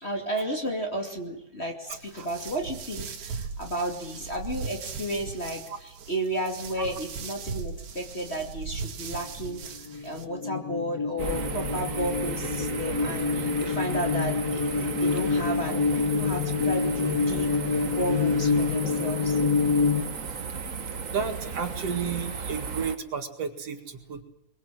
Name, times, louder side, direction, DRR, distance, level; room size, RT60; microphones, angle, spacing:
voice 1, 0.0-19.4, right 1 dB, 20° left, 1 dB, 2.5 m, -33 dB
sound 1, 1.9-10.2, right 5 dB, 80° right, 3.4 m, -38 dB
sound 2, 9.5-20.0, left 5 dB, 60° left, 3.0 m, -27 dB
sound 3, 11.2-23.0, right 5 dB, 40° right, 1.1 m, -35 dB
voice 2, 21.1-24.2, right 6 dB, 55° right, 6 dB, 2.9 m, -32 dB
23.5 x 23.0 x 7.8 m, 0.75 s
omnidirectional pair, 3.4 m